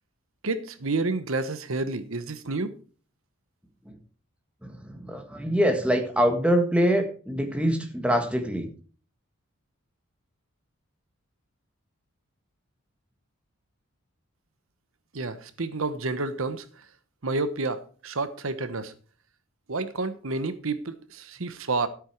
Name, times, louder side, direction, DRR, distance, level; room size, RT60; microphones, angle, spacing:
voice 1, 0.4-2.7 15.1-16.8 17.2-18.9 19.7-21.9, right 3 dB, 70° right, 1.0 m, -30 dB
voice 2, 4.6-8.7, equal, 5° right, 1.5 m, -24 dB
13.0 x 8.7 x 4.6 m
head